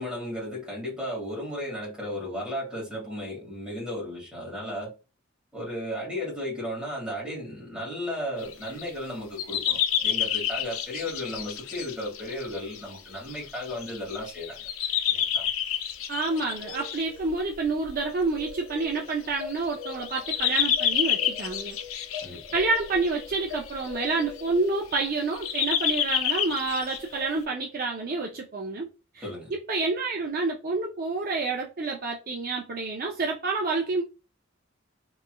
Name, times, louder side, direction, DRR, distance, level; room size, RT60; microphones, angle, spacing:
voice 1, 0.0-4.9 5.5-14.7 15.1-15.5 22.2-22.4 29.2-29.5, left 1 dB, 5° right, 1.8 m, -34 dB
sound 1, 8.4-8.9 9.4-27.3, left 9 dB, 85° left, 0.5 m, -30 dB
voice 2, 16.1-21.8 22.5-28.9 29.1-29.2 29.5-34.0, right 3 dB, 45° right, 0.5 m, -28 dB
3.3 x 3.1 x 2.2 m
head